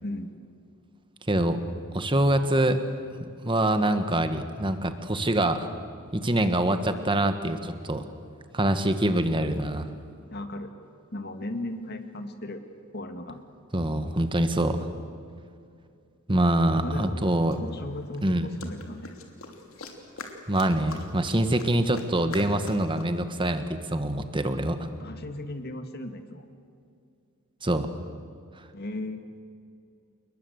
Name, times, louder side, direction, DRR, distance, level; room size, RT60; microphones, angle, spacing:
voice 1, 0.0-0.3 10.3-10.7 11.1-12.6 12.9-13.4 16.8-17.2 17.6-19.1 25.0-26.5 28.7-29.2, left 1 dB, 45° left, 7 dB, 2.0 m, -36 dB
voice 2, 1.3-1.6 1.9-2.8 3.2-5.7 6.1-8.1 8.5-9.9 13.7-14.9 16.3-17.6 18.2-18.5 20.5-24.9 27.6-27.9, right 1 dB, 20° right, 9 dB, 1.5 m, -25 dB
sound 1, 16.8-16.9 17.5-23.0, left 3 dB, 70° left, 3.0 m, -43 dB
29.0 x 20.5 x 8.1 m, 2.4 s
head